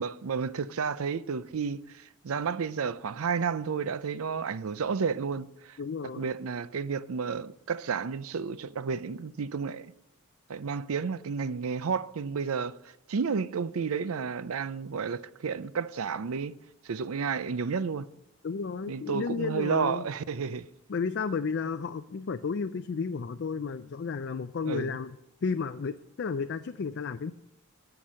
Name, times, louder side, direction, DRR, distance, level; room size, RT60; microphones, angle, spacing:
voice 1, 0.0-5.8 6.2-9.9 10.5-12.8 13.1-16.6 16.8-18.1 18.9-20.7 24.7-25.0, right 5 dB, 75° right, 0.5 m, -31 dB
voice 2, 5.8-6.3 18.4-20.0 20.9-25.2 25.4-27.3, left 5 dB, 50° left, 0.4 m, -32 dB
16.5 x 6.0 x 6.2 m
head